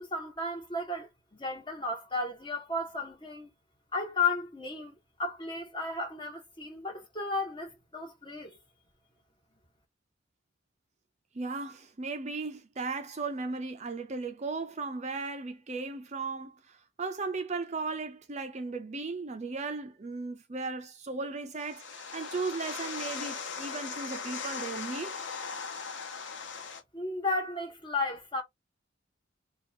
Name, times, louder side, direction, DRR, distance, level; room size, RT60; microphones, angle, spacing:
voice 1, 0.0-3.5 3.9-8.6 26.9-28.4, left 3 dB, 25° left, 1.4 m, -34 dB
voice 2, 11.3-25.2, right 3 dB, 35° right, 0.6 m, -36 dB
sound 1, 21.6-26.8, left 5 dB, 70° left, 0.9 m, -39 dB
2.9 x 2.4 x 4.2 m
head